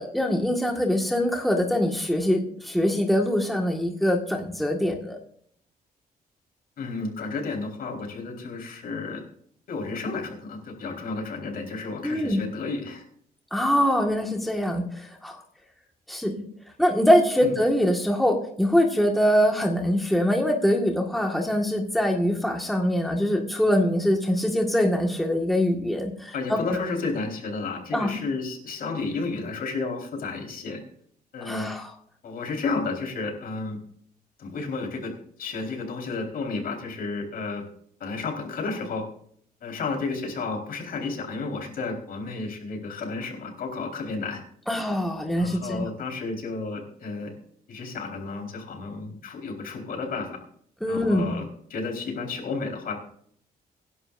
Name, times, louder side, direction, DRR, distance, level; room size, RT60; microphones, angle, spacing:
voice 1, 0.0-5.2 12.0-12.4 13.5-15.4 16.1-16.4 16.8-26.8 27.9-28.1 31.4-31.9 44.7-45.9 50.8-51.4, equal, ahead, 1 dB, 1.7 m, -23 dB
voice 2, 6.8-9.2 9.7-13.0 17.4-17.5 26.3-30.8 31.3-31.7 32.2-33.8 34.4-35.1 35.4-37.6 38.0-39.0 39.6-44.4 45.4-47.3 47.7-50.4 50.9-51.4 51.7-52.9, left 3 dB, 65° left, 2 dB, 4.3 m, -32 dB
25.0 x 11.0 x 2.6 m, 0.62 s
cardioid pair, 145°, 16 cm